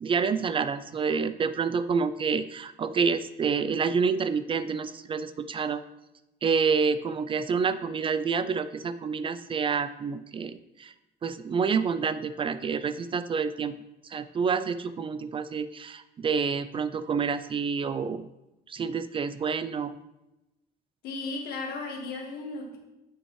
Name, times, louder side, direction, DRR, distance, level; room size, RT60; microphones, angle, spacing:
voice 1, 0.0-5.8 6.4-10.9 11.2-13.7 14.1-18.3 18.7-20.0, right 5 dB, 30° right, 12 dB, 0.3 m, -28 dB
voice 2, 21.0-22.8, left 3 dB, 70° left, 2 dB, 1.5 m, -35 dB
9.1 x 5.3 x 3.1 m, 0.95 s
cardioid pair, 110°, 17 cm